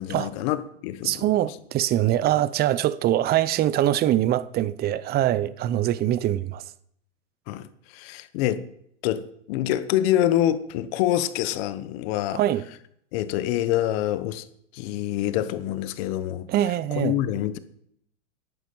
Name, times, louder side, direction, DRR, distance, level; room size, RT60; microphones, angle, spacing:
voice 1, 0.0-1.5 7.5-8.6 9.0-12.4 13.1-14.4 14.7-16.5 17.0-17.6, left 12 dB, 50° left, 1.2 m, -26 dB
voice 2, 1.0-6.6 12.3-12.7 16.5-17.2, right 13 dB, 25° right, 0.6 m, -23 dB
11.0 x 9.5 x 7.8 m
hypercardioid pair, 125°, 38 cm